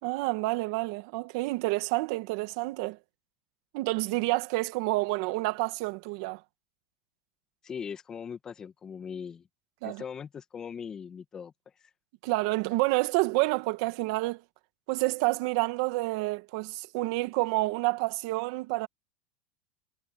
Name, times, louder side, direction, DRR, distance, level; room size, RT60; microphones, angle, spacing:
voice 1, 0.0-3.0 3.7-6.4 9.8-10.0 12.2-14.4 14.9-18.9, right 22 dB, 65° right, 1.9 m, -29 dB
voice 2, 7.6-9.5 9.8-11.5, left 7 dB, 25° left, 2.0 m, -40 dB
supercardioid pair, 115°, 2 cm